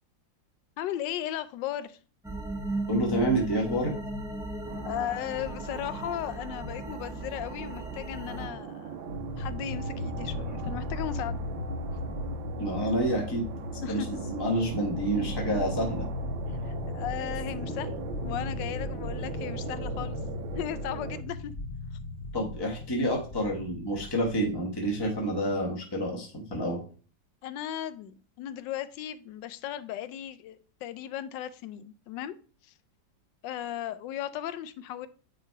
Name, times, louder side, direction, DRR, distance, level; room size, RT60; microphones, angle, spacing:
voice 1, 0.8-2.0 4.8-9.1 9.4-11.4 13.8-14.2 16.7-20.2 20.5-21.5 27.4-32.3 32.6-32.7 33.4-35.1, left 11 dB, 75° left, 1.2 m, -36 dB
sound 1, 2.2-8.5, right 1 dB, 5° right, 0.3 m, -36 dB
voice 2, 2.9-3.9 12.6-13.4 13.9-16.1 22.3-26.8, right 1 dB, 15° left, 0.9 m, -28 dB
sound 2, 4.6-21.2, right 8 dB, 85° right, 1.4 m, -41 dB
sound 3, 9.1-25.6, left 2 dB, 60° left, 0.6 m, -37 dB
8.9 x 3.1 x 4.6 m
omnidirectional pair, 2.1 m